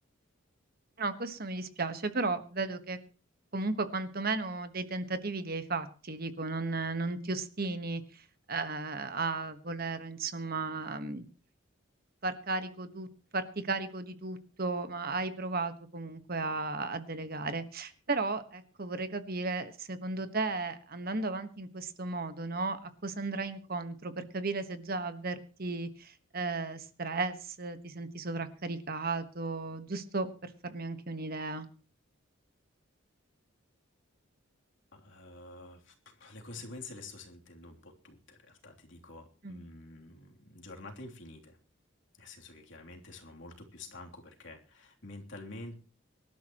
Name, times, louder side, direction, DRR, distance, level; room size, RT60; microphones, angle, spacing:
voice 1, 1.0-3.0 3.5-11.2 12.2-13.1 13.3-31.7 39.4-39.6, right 3 dB, 45° right, 10 dB, 1.4 m, -35 dB
voice 2, 34.9-41.6 42.2-45.8, left 2 dB, 60° left, 2 dB, 3.1 m, -48 dB
25.0 x 12.5 x 3.0 m, 0.37 s
head